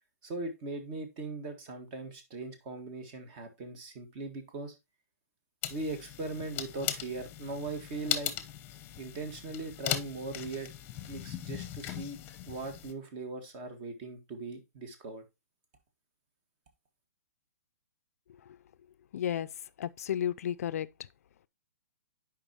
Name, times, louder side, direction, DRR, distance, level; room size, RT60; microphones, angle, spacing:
voice 1, 0.2-4.7 5.7-8.3 9.0-10.7 11.1-12.2 12.5-15.2, right 3 dB, 35° right, 1.6 m, -39 dB
sound 1, 5.6-12.9, left 12 dB, 25° left, 0.8 m, -38 dB
voice 2, 19.1-19.5 19.8-20.9, left 10 dB, 65° left, 0.4 m, -32 dB
9.9 x 5.0 x 2.9 m
hypercardioid pair, 145°, 9 cm